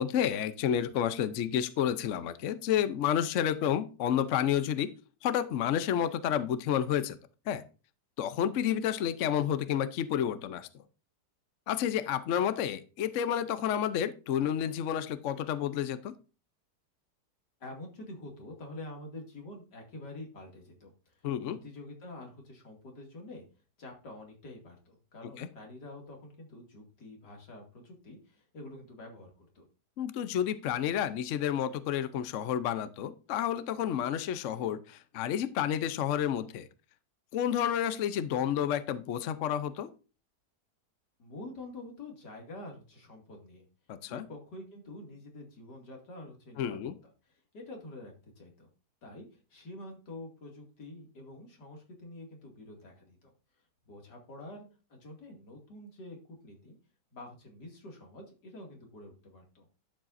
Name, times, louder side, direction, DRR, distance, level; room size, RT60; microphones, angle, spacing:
voice 1, 0.0-4.9 5.2-7.2 7.5-7.6 8.2-10.7 11.7-16.2 21.2-21.6 25.4-25.5 30.0-36.7 37.3-39.9 43.9-44.2 46.6-46.9, left 9 dB, 60° left, 13 dB, 0.8 m, -30 dB
voice 2, 17.6-23.4 23.8-29.7 41.2-43.6 44.0-46.9 47.3-48.7 49.0-53.3 53.9-56.7 57.1-59.7, left 2 dB, 80° left, 1 dB, 2.9 m, -47 dB
11.5 x 7.4 x 2.6 m, 0.34 s
omnidirectional pair, 1.8 m